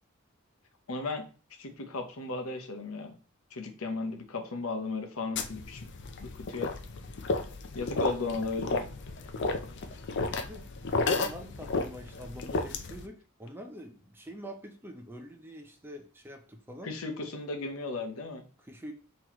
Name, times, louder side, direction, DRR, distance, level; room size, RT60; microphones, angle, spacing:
voice 1, 0.9-1.2 1.6-3.1 3.5-5.9 6.2-6.7 7.7-8.8 16.8-18.4, left 3 dB, 70° left, 5 dB, 0.8 m, -35 dB
sound 1, 5.4-13.1, left 3 dB, 55° left, 0.5 m, -33 dB
voice 2, 10.5-16.9 18.6-18.9, equal, 10° right, 3 dB, 0.6 m, -45 dB
5.8 x 3.1 x 3.0 m, 0.37 s
head